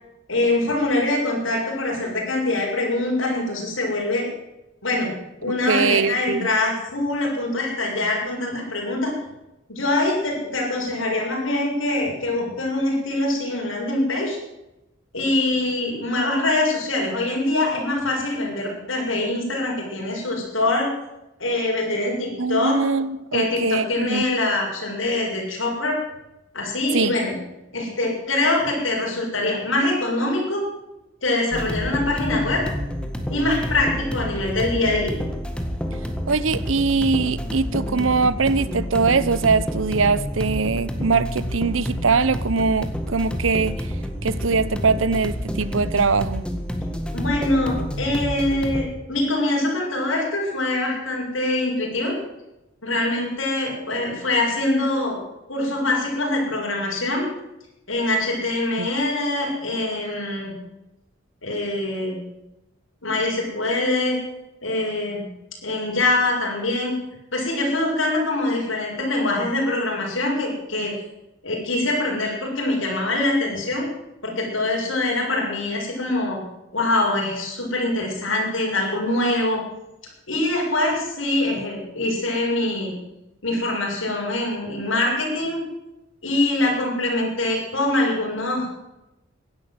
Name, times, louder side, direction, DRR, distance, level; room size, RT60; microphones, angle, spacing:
voice 1, 0.3-4.2 4.8-5.1 5.4-9.1 9.7-14.4 15.1-20.9 21.4-22.9 23.3-26.0 26.5-27.3 27.7-30.6 31.2-32.6 33.3-35.1 47.1-52.2 52.8-55.2 55.5-57.3 57.9-60.5 61.4-62.2 63.0-64.2 64.6-65.2 65.6-66.9 67.3-70.9 71.4-73.8 74.2-76.4 76.7-79.6 80.3-82.9 83.4-85.6 86.2-88.7, left 2 dB, 80° left, -2 dB, 6.9 m, -24 dB
voice 2, 5.7-6.5 22.4-24.2 26.9-27.1 36.3-43.9 44.2-46.4 58.8-58.9, right 4 dB, 85° right, 17 dB, 0.8 m, -22 dB
sound 1, 31.5-48.9, equal, 5° left, 1.7 m, -29 dB
16.0 x 11.5 x 7.8 m, 0.94 s
head